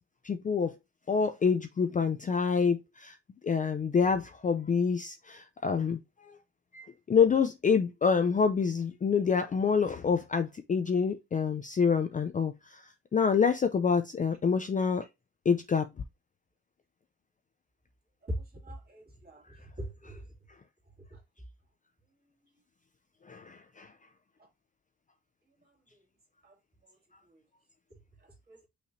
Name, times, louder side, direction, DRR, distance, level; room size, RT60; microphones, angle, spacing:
voice 1, 0.2-0.7 1.1-3.1 3.4-6.3 6.7-12.8 13.1-15.0 15.5-15.9 23.3-23.9, left 6 dB, 25° left, 0.4 m, -27 dB
voice 2, 18.2-19.4 19.8-20.2 21.1-21.2 26.4-26.5 28.5-28.7, equal, 30° right, 2.4 m, -40 dB
5.7 x 3.1 x 2.6 m
cardioid pair, 90°, 30 cm